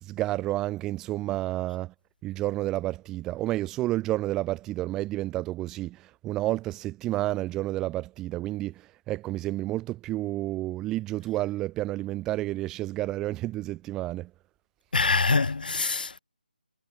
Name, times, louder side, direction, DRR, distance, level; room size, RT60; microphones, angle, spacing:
voice 1, 0.0-1.9 2.2-14.3, right 16 dB, 10° right, 2.3 m, -30 dB
voice 2, 14.9-16.2, left 4 dB, 65° left, 3.4 m, -24 dB
hypercardioid pair, 170°, 5 cm